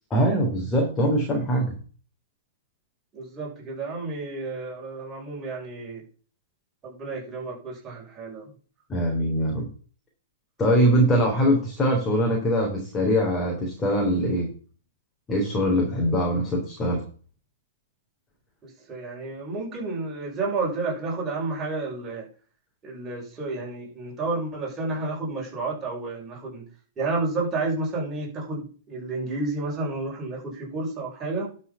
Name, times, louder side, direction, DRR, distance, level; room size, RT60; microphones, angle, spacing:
voice 1, 0.1-1.7 8.9-9.7 10.6-14.5 15.3-17.0, equal, 15° left, 0 dB, 3.8 m, -22 dB
voice 2, 3.1-6.0 6.8-8.4 10.6-10.9 18.9-22.2 22.8-26.6 27.0-31.5, right 3 dB, 20° right, -3 dB, 6.6 m, -31 dB
11.5 x 5.8 x 5.9 m, 0.40 s
figure-of-eight pair, 110°, 0 cm